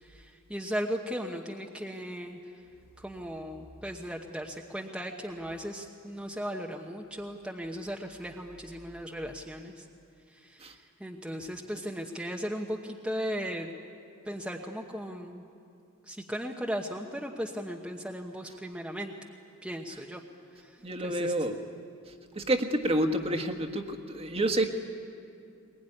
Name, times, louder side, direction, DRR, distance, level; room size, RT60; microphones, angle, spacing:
voice 1, 0.0-2.4 3.0-9.9 10.3-13.7 14.2-15.4 16.1-19.1 19.6-20.2 20.5-21.3, equal, 5° right, 1 dB, 1.0 m, -37 dB
voice 2, 20.8-21.5 22.4-24.7, right 1 dB, 25° right, 5 dB, 1.5 m, -28 dB
22.5 x 21.0 x 9.9 m, 2.4 s
head